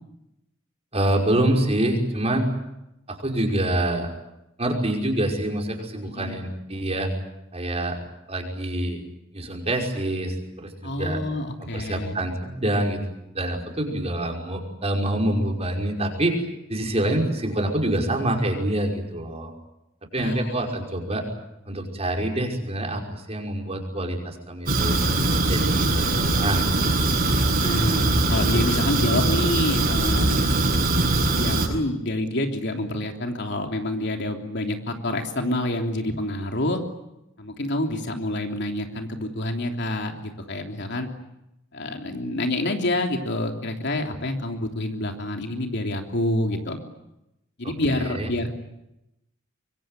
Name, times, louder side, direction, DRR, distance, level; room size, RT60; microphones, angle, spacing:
voice 1, 0.9-2.5 3.1-4.1 4.6-7.1 7.5-8.0 8.3-9.0 9.3-11.2 11.6-13.0 13.3-16.4 16.7-19.5 20.1-21.2 21.7-25.0 25.5-27.1 47.9-48.3, right 1 dB, 30° right, 1 dB, 5.6 m, -26 dB
voice 2, 6.0-6.4 10.8-12.2 20.1-20.5 27.6-30.4 31.3-36.8 37.4-41.1 41.7-46.8 47.6-48.5, left 1 dB, 60° left, 4 dB, 3.2 m, -27 dB
Fire, 24.7-31.7, right 2 dB, 50° right, 7.9 m, -22 dB
25.0 x 23.5 x 9.1 m, 0.88 s
head